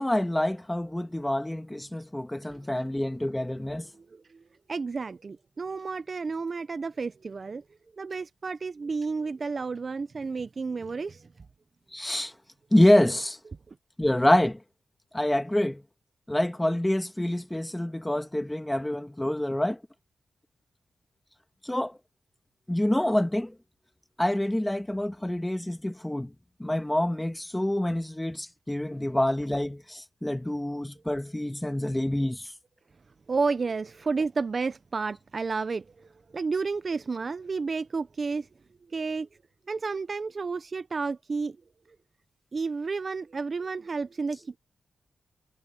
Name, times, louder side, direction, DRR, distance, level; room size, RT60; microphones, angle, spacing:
voice 1, 0.0-3.9 11.9-12.3 12.7-13.4 14.0-14.6 15.1-15.8 16.3-19.8 21.6-22.0 22.7-23.5 24.2-26.3 26.6-32.5, left 1 dB, 5° left, 1.6 m, -26 dB
voice 2, 4.0-4.4 4.7-7.6 8.0-11.3 13.7-13.8 33.3-36.1 36.3-38.5 38.9-39.3 39.7-41.6 42.5-44.6, right 4 dB, 35° right, 0.4 m, -31 dB
wide cardioid pair, 175°, 0 cm